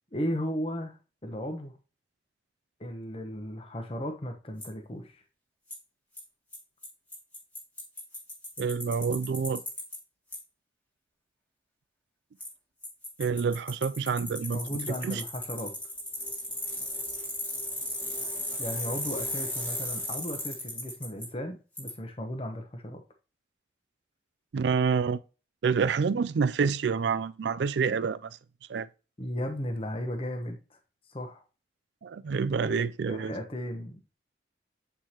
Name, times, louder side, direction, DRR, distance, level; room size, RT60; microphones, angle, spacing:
voice 1, 0.1-1.0 1.2-1.8 2.8-5.2 14.5-15.7 18.6-23.0 29.2-30.6 31.1-31.4 32.6-34.1, equal, 30° left, 0.8 m, -35 dB
Bicycle, 4.6-4.7 5.7-5.8 6.2-6.3 6.5-6.6 6.8-6.9 7.1-10.0 10.3-10.4 12.4-12.5 12.8-21.3 21.8-21.9, left 1 dB, 10° left, 1.4 m, -36 dB
voice 2, 8.6-9.6 13.2-14.6 14.9-15.2 24.5-25.2 25.6-28.4 28.7-28.9 32.0-33.3, right 5 dB, 70° right, 0.4 m, -27 dB
8.0 x 4.5 x 2.9 m
head